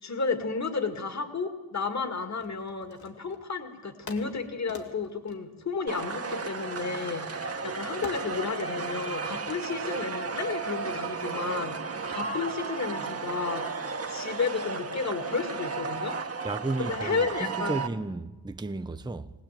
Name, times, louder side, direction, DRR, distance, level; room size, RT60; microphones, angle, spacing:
voice 1, 0.0-13.7 14.1-16.2 16.8-17.8, left 4 dB, 50° left, 2.1 m, -32 dB
sound 1, 2.4-3.5 4.1-6.5 8.0-8.4, left 3 dB, 75° left, 2.8 m, -46 dB
sound 2, 5.9-17.9, right 4 dB, 40° right, 1.3 m, -34 dB
voice 2, 16.4-19.3, right 2 dB, 10° right, 0.7 m, -33 dB
21.0 x 19.5 x 9.1 m
wide cardioid pair, 130°, 36 cm